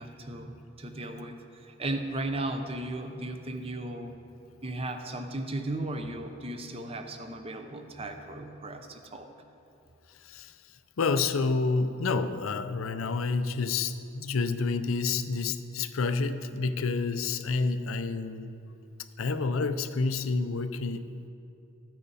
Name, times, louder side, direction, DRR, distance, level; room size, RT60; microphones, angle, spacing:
voice 1, 0.0-4.2 4.6-9.3, right 1 dB, 30° right, 6 dB, 0.7 m, -36 dB
voice 2, 10.1-18.6 19.2-21.3, left 4 dB, 85° left, 11 dB, 0.6 m, -29 dB
14.5 x 8.9 x 4.1 m, 2.8 s
head